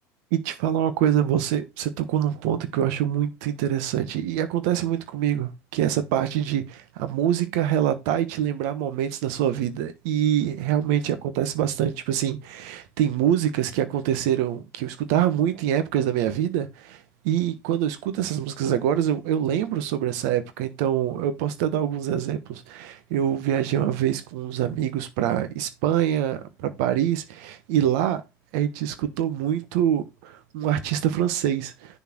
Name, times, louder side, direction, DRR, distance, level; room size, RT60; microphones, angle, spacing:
voice 1, 0.3-28.2 28.5-32.0, right 10 dB, 75° right, 1.3 m, -25 dB
7.0 x 4.5 x 6.0 m
hypercardioid pair, 80°, 9 cm